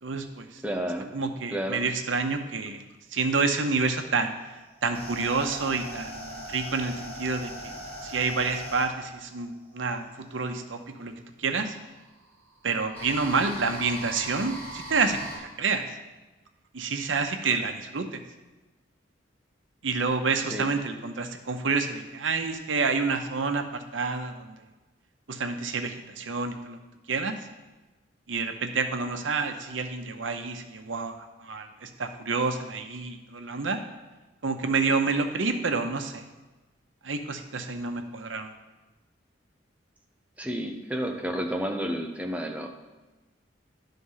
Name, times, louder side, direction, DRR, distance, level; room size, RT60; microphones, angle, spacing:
voice 1, 0.0-0.6 1.1-2.8 3.1-4.3 4.8-7.7 8.0-11.1 11.4-11.7 12.6-15.8 16.7-18.2 19.8-23.6 23.9-24.5 25.3-26.8 27.1-27.3 28.3-33.8 34.4-36.2 37.0-38.5, right 4 dB, 85° right, 6 dB, 0.8 m, -28 dB
voice 2, 0.6-1.1 1.5-1.8 20.5-20.7 40.4-42.7, equal, 10° right, 3 dB, 0.7 m, -31 dB
sound 1, 4.4-10.6 11.6-15.4, equal, 10° left, 3.0 m, -40 dB
11.0 x 3.8 x 5.6 m, 1.2 s
head